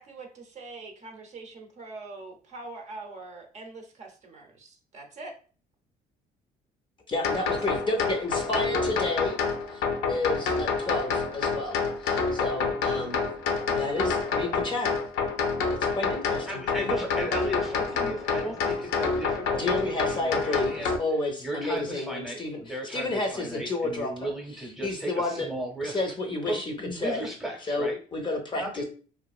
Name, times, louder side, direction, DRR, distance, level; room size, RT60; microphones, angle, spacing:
voice 1, 0.0-5.3 7.5-7.6, right 3 dB, 45° right, 2 dB, 0.6 m, -43 dB
voice 2, 7.1-9.4 9.7-9.8 10.1-13.3 13.7-15.0 15.7-16.6 19.6-22.6 22.9-24.3 24.8-25.5 25.8-26.7 27.0-27.3 27.7-28.8, left 2 dB, 30° left, 3 dB, 0.5 m, -31 dB
sound 1, 7.2-21.0, left 5 dB, 90° left, 0.5 m, -28 dB
voice 3, 16.5-20.9 21.4-26.0 26.5-28.0 28.5-28.8, right 1 dB, ahead, 1 dB, 0.8 m, -36 dB
2.9 x 2.5 x 2.3 m, 0.39 s
cardioid pair, 110°, 17 cm